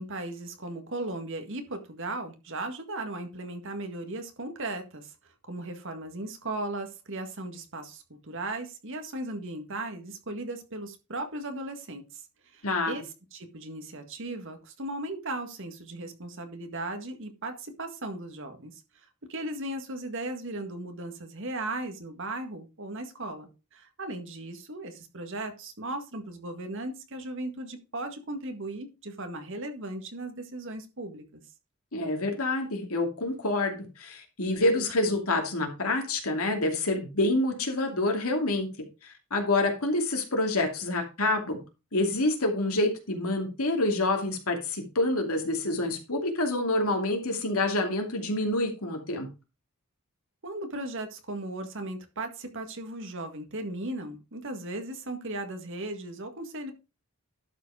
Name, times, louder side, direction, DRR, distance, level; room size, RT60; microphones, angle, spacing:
voice 1, 0.0-5.1 5.5-12.2 12.5-13.0 13.3-18.7 19.3-31.4 50.4-56.7, right 2 dB, 60° right, 6 dB, 1.9 m, -37 dB
voice 2, 12.6-13.0 31.9-38.7 39.0-41.6 41.9-49.3, left 2 dB, 75° left, 3 dB, 2.7 m, -27 dB
11.5 x 5.1 x 4.9 m, 0.29 s
head